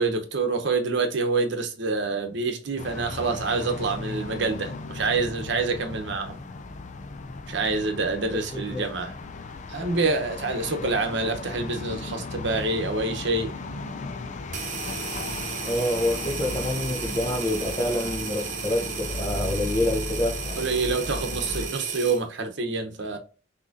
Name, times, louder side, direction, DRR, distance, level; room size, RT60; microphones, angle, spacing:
voice 1, 0.0-6.4 7.5-9.1 9.7-13.5 20.6-23.2, right 3 dB, 70° right, 0.9 m, -27 dB
sound 1, 2.8-21.7, left 3 dB, 40° left, 0.5 m, -36 dB
voice 2, 8.3-8.8 10.8-10.9 15.6-20.7, left 1 dB, 20° left, 1.0 m, -27 dB
sound 2, 14.5-22.2, right 6 dB, 45° right, 1.0 m, -34 dB
6.0 x 3.0 x 2.6 m
head